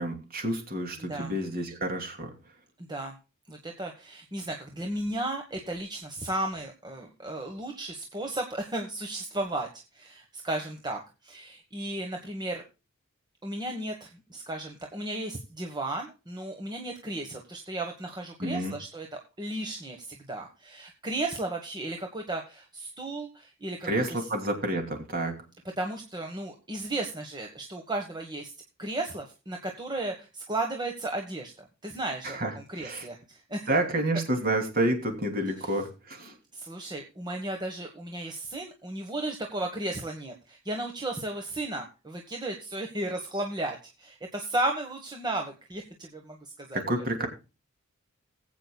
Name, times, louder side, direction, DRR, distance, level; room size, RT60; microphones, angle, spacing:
voice 1, 0.0-2.3 18.4-18.7 23.8-25.4 32.2-33.1 33.7-36.3 46.7-47.3, right 1 dB, 40° right, 4 dB, 2.8 m, -29 dB
voice 2, 3.5-9.7 9.9-12.6 13.4-19.1 19.4-24.2 25.8-28.5 28.8-33.7 35.6-35.7 36.5-46.8, right 2 dB, 20° right, 2 dB, 1.3 m, -34 dB
19.5 x 8.3 x 2.3 m, 0.30 s
head